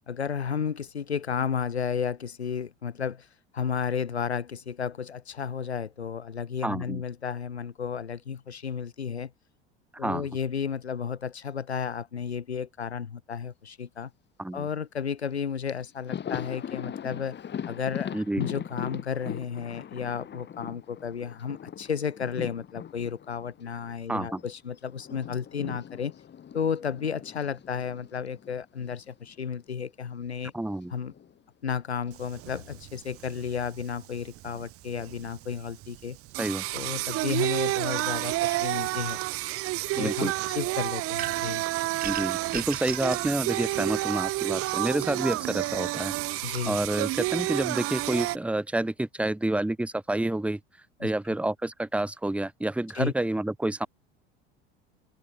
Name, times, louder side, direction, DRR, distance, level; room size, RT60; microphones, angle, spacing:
voice 1, 0.1-3.3 3.5-9.3 10.0-14.1 14.5-17.4 17.7-26.1 26.5-30.5 30.9-31.1 31.6-36.2 36.7-39.2 40.0-41.6 46.4-46.8 51.0-51.1 52.9-53.1, left 7 dB, 90° left, 1.4 m, -33 dB
voice 2, 6.6-7.0 10.0-10.3 14.4-14.7 18.1-18.4 24.1-24.4 30.5-30.9 36.4-36.6 40.0-40.3 42.0-46.1 46.6-50.6 51.0-53.9, right 1 dB, 5° right, 1.2 m, -29 dB
Thunder, 15.3-15.4 15.7-24.5 24.8-29.1 29.3-29.5 30.7-31.4, left 9 dB, 35° left, 3.1 m, -40 dB
Singing, 32.1-48.4, right 18 dB, 45° right, 0.9 m, -30 dB
sound 1, 41.2-41.6 42.0-43.3, right 12 dB, 30° right, 0.5 m, -36 dB
hypercardioid pair, 75°, 32 cm